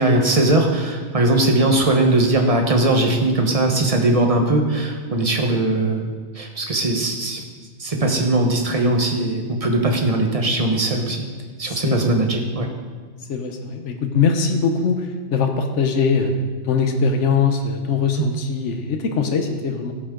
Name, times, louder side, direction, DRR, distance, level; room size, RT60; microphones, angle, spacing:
voice 1, 0.0-7.4 7.8-11.2 11.6-12.7 18.2-18.3, right 2 dB, 30° right, 2 dB, 1.2 m, -20 dB
voice 2, 13.3-16.3 16.6-19.9, left 5 dB, 75° left, 5 dB, 1.2 m, -21 dB
13.5 x 8.6 x 3.8 m, 1.5 s
omnidirectional pair, 1.2 m